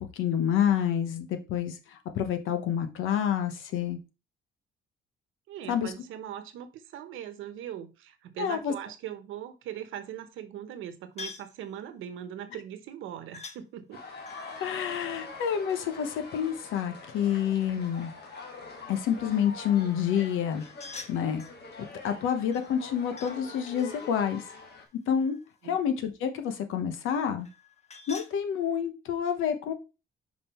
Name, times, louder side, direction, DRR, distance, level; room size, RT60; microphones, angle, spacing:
voice 1, 0.0-4.0 5.7-5.9 8.4-8.7 14.6-18.1 18.9-20.6 21.1-21.4 22.0-24.4 25.1-25.4 25.6-27.5 28.1-29.7, left 8 dB, 90° left, 1.1 m, -28 dB
voice 2, 5.5-14.0 25.6-25.8, right 10 dB, 90° right, 1.0 m, -40 dB
sound 1, 11.2-11.6 13.3-13.6 14.2-16.0 20.6-21.6 22.5-23.4 23.7-25.6 27.4-28.3, left 4 dB, 35° left, 1.1 m, -46 dB
sound 2, 13.9-24.9, left 4 dB, 55° left, 2.1 m, -44 dB
5.5 x 5.1 x 4.4 m
cardioid pair, 90°, 20 cm